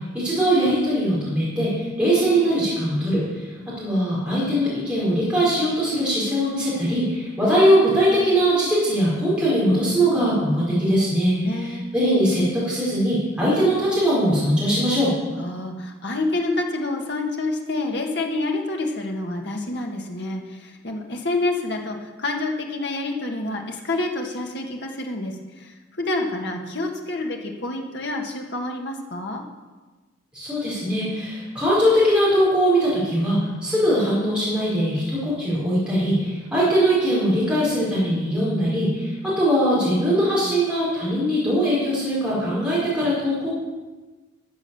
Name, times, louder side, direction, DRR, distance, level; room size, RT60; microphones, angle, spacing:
voice 1, 0.1-3.5 3.8-15.1 30.3-43.5, equal, 5° right, -9 dB, 4.9 m, -21 dB
voice 2, 11.4-11.9 15.4-29.4, left 2 dB, 55° left, 2 dB, 1.7 m, -28 dB
13.5 x 7.2 x 7.0 m, 1.3 s
head